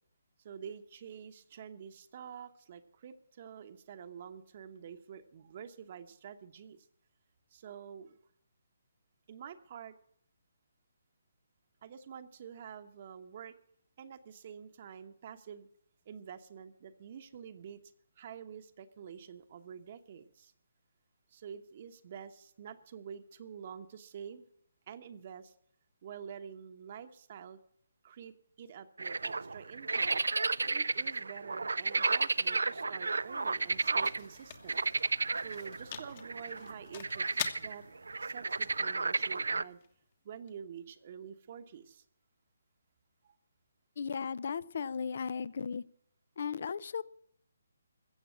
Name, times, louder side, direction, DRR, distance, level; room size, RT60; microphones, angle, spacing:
voice 1, 0.4-6.9 7.5-8.2 9.3-9.9 11.8-13.5 14.0-15.7 16.1-17.8 18.2-20.5 21.3-24.4 24.9-25.5 26.0-27.6 28.0-30.2 30.6-34.7 35.3-37.8 38.2-39.8 40.2-42.0 43.2-43.4, right 7 dB, 45° right, 8 dB, 1.0 m, -48 dB
sound 1, 29.0-34.2 34.7-39.6, right 3 dB, 85° right, 0.4 m, -32 dB
sound 2, 32.6-40.5, left 9 dB, 40° left, 1.4 m, -47 dB
voice 2, 44.0-45.8 46.4-47.0, left 6 dB, 55° left, 21 dB, 0.6 m, -36 dB
15.5 x 7.2 x 8.5 m, 0.67 s
hypercardioid pair, 150°, 0 cm